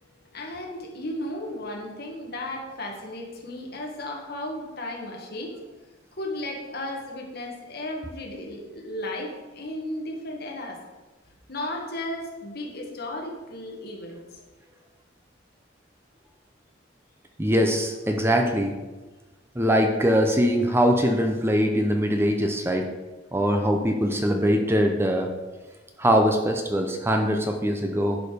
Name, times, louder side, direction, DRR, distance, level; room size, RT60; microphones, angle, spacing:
voice 1, 0.3-5.7 6.2-10.8 11.5-14.4, left 1 dB, 55° left, 0 dB, 1.7 m, -34 dB
voice 2, 17.4-18.7 19.6-22.9 23.3-25.3 26.0-28.2, equal, 10° right, 3 dB, 0.7 m, -22 dB
11.0 x 4.9 x 5.0 m, 1.2 s
head